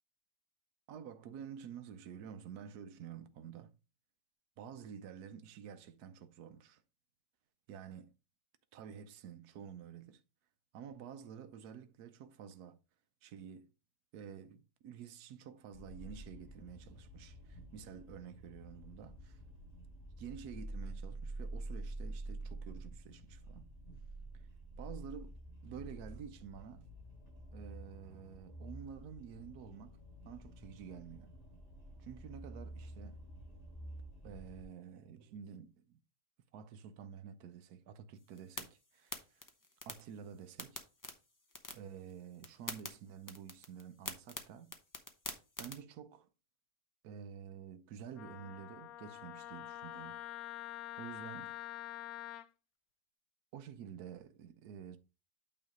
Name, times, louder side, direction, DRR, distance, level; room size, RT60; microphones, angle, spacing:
voice 1, 0.9-3.8 4.6-6.8 7.7-8.1 8.7-10.2 10.7-12.8 13.2-13.7 14.1-19.4 20.2-23.7 24.3-24.5 24.8-25.4 25.6-26.9 27.5-30.0 30.2-31.4 32.0-33.2 34.2-36.0 36.5-39.4 39.9-40.8 41.7-44.7 45.6-46.3 47.0-50.2 51.0-51.5 53.5-55.0, right 8 dB, 70° right, 1.2 m, -50 dB
sound 1, 15.7-34.6, right 1 dB, 35° left, 4.5 m, -48 dB
sound 2, 38.2-45.8, left 2 dB, 20° left, 0.6 m, -48 dB
Wind instrument woodwind instrument, 48.2-52.5, left 15 dB, 70° left, 1.0 m, -46 dB
8.9 x 3.2 x 5.0 m
omnidirectional pair, 1.8 m